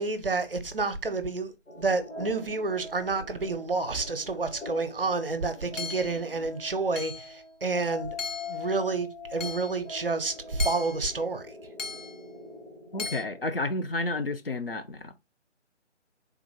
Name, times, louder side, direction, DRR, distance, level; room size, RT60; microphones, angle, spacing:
voice 1, 0.0-1.5 1.8-8.1 8.5-11.4, right 3 dB, 50° right, 0.5 m, -29 dB
sound 1, 1.7-13.4, left 4 dB, 70° left, 1.2 m, -43 dB
Hammer / Chink clink, 5.8-6.2 7.0-7.3 8.2-8.6 9.4-9.8 10.6-11.1 11.8-12.2 13.0-13.2, left 5 dB, 90° left, 0.8 m, -37 dB
voice 2, 12.9-15.1, left 2 dB, 50° left, 0.4 m, -31 dB
3.6 x 2.0 x 2.8 m
figure-of-eight pair, 155°, 37 cm